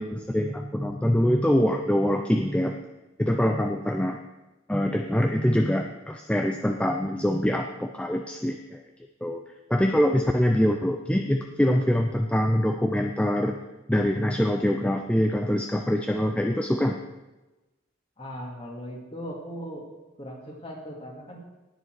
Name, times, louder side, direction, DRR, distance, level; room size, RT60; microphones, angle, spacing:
voice 1, 0.0-2.8 3.2-4.2 4.7-8.8 9.2-9.4 9.7-13.6 13.9-17.0, equal, 5° left, 4 dB, 0.5 m, -24 dB
voice 2, 18.2-19.9 20.2-21.4, equal, 25° left, -1 dB, 2.5 m, -38 dB
18.5 x 7.2 x 4.8 m, 1.1 s
head